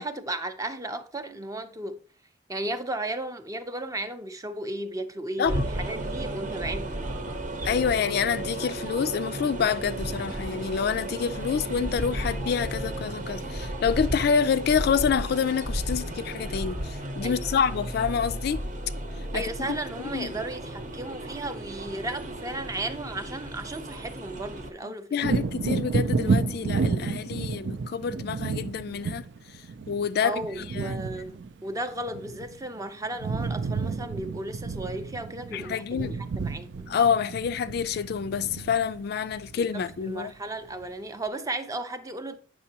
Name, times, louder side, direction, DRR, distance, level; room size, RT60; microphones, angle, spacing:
voice 1, 0.0-2.0 2.5-7.1 17.2-17.8 19.3-25.3 30.2-37.0 39.7-42.4, right 2 dB, 20° right, 0.5 m, -35 dB
sound 1, 5.5-24.7, right 1 dB, 45° right, 0.8 m, -34 dB
voice 2, 7.6-18.6 19.3-19.7 20.1-20.3 25.1-29.2 29.9-30.4 30.7-30.9 35.5-36.2 36.9-40.3, left 7 dB, 60° left, 0.3 m, -27 dB
Wind / Thunder, 25.2-32.8 33.0-40.3 40.7-40.8, right 4 dB, 70° right, 0.4 m, -31 dB
8.3 x 5.9 x 2.8 m
head